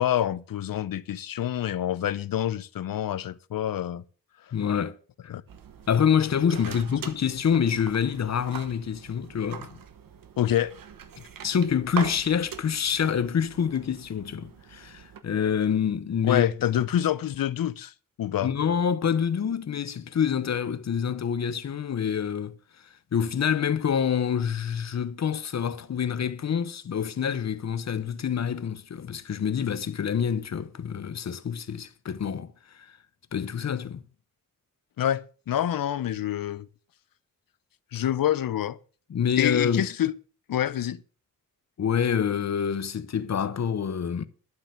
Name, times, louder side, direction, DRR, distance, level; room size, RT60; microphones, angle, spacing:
voice 1, 0.0-4.0 5.3-5.4 10.4-10.7 16.2-17.9 18.2-18.5 35.0-36.7 37.9-38.8 39.4-40.2 40.5-41.0, left 11 dB, 85° left, 0.7 m, -27 dB
voice 2, 4.5-5.0 5.2-5.3 5.9-9.8 11.4-16.4 18.4-22.6 23.1-32.9 33.3-34.0 39.1-39.9 41.8-44.3, left 7 dB, 50° left, 0.9 m, -27 dB
sound 1, 5.5-15.2, right 7 dB, 80° right, 1.2 m, -42 dB
11.5 x 7.6 x 6.7 m
wide cardioid pair, 175°, 34 cm